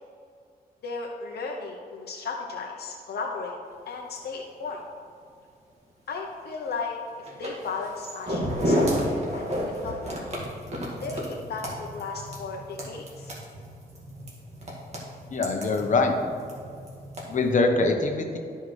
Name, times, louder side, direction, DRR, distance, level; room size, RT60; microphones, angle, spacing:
voice 1, 0.8-3.6 3.9-4.8 6.1-10.4 11.0-13.3, left 4 dB, 85° left, 0 dB, 0.8 m, -35 dB
sound 1, 7.3-17.5, equal, 45° right, 2.0 m, -32 dB
voice 2, 15.3-16.1 17.3-18.4, left 3 dB, 50° left, 4 dB, 1.0 m, -23 dB
12.5 x 5.6 x 3.2 m, 2.4 s
wide cardioid pair, 125°, 16 cm